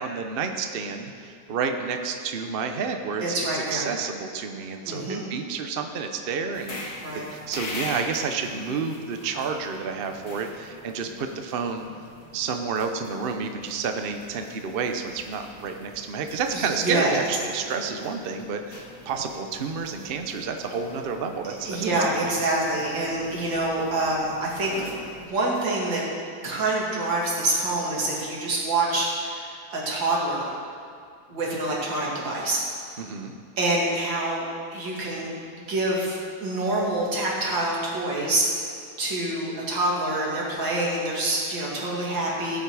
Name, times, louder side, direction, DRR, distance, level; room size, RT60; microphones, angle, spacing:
voice 1, 0.0-7.0 7.3-11.9 12.3-21.5 22.1-22.4 33.0-33.3, right 5 dB, 80° right, 5 dB, 0.5 m, -30 dB
voice 2, 3.2-3.8 4.9-5.2 7.0-7.2 16.5-17.1 21.6-24.8 25.3-26.0 26.4-30.5 31.3-32.6 33.6-34.4 34.7-35.3 35.6-38.5 39.0-42.6, right 2 dB, 65° right, -4 dB, 3.1 m, -26 dB
sound 1, 6.5-25.3, left 2 dB, 75° left, 2.4 m, -43 dB
16.0 x 8.5 x 4.9 m, 2.2 s
omnidirectional pair, 2.2 m